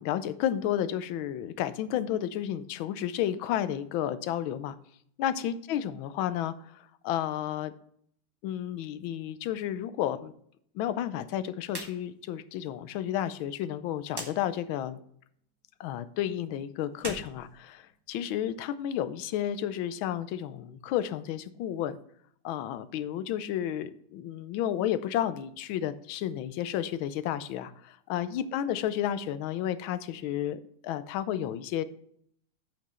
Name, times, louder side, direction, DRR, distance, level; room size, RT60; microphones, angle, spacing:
voice 1, 0.0-4.8 5.2-7.7 8.4-10.3 10.7-15.0 15.8-22.0 22.4-31.8, left 11 dB, 75° left, 14 dB, 1.3 m, -32 dB
sound 1, 11.7-12.0 12.3-12.4 14.1-14.3 16.9-18.2, right 2 dB, 25° right, 0.5 m, -40 dB
8.1 x 6.1 x 4.3 m, 0.66 s
omnidirectional pair, 2.3 m